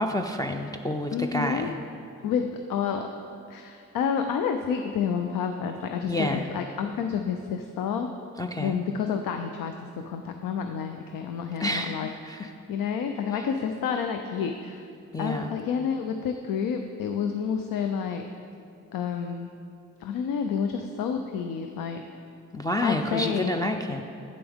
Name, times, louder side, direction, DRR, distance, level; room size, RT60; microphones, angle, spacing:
voice 1, 0.0-1.7 6.0-6.5 8.4-8.8 11.6-12.5 13.3-13.4 15.1-15.5 22.5-24.0, left 1 dB, 10° left, 2 dB, 0.4 m, -29 dB
voice 2, 1.1-1.8 2.2-3.1 3.5-8.1 8.6-9.7 10.1-14.9 15.2-18.2 18.9-19.5 20.0-22.0 22.8-23.6, left 7 dB, 80° left, 5 dB, 0.5 m, -29 dB
8.7 x 7.0 x 3.5 m, 2.5 s
cardioid pair, 60°, 33 cm